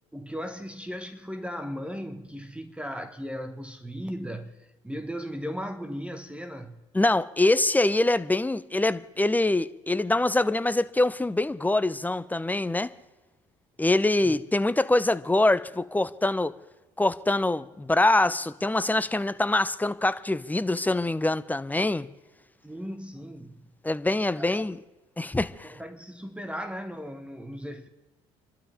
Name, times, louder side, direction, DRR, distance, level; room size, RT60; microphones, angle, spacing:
voice 1, 0.1-4.6 4.8-6.8 14.2-14.3 22.6-23.7 24.3-24.7 25.6-27.9, equal, 5° right, 1.4 m, -37 dB
voice 2, 6.9-12.9 13.8-16.5 17.0-22.1 23.8-24.8 25.2-25.7, left 2 dB, 10° left, 0.8 m, -24 dB
29.0 x 12.5 x 3.5 m
hypercardioid pair, 60°, 17 cm